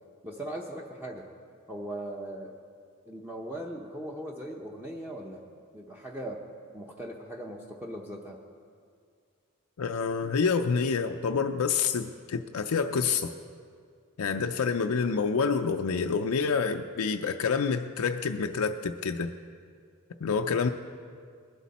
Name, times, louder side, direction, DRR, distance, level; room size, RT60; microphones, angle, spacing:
voice 1, 0.2-1.3 1.7-2.6 3.1-5.4 5.7-6.4 6.7-8.4, right 1 dB, 10° right, -1 dB, 0.8 m, -39 dB
voice 2, 9.8-13.3 14.2-19.3 20.2-20.7, left 5 dB, 80° left, 5 dB, 0.5 m, -27 dB
20.0 x 11.5 x 4.2 m, 2.2 s
head